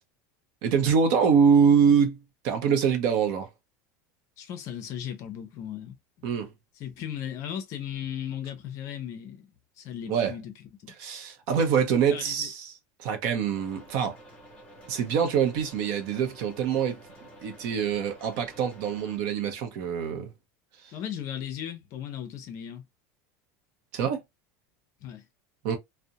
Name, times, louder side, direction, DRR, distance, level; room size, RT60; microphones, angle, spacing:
voice 1, 0.6-2.2 2.4-3.5 6.2-6.5 10.1-10.3 11.0-12.7 13.0-14.2 14.9-17.0 17.4-20.3 23.9-24.2 25.6-25.8, right 7 dB, 50° right, 0.7 m, -24 dB
voice 2, 4.4-5.9 6.8-9.4 9.8-10.5 10.8-10.9 12.1-12.5 20.9-22.8 25.0-25.2, left 9 dB, 40° left, 0.6 m, -36 dB
sound 1, 13.5-19.2, right 1 dB, 10° left, 0.8 m, -50 dB
2.4 x 2.1 x 2.7 m
supercardioid pair, 170°, 9 cm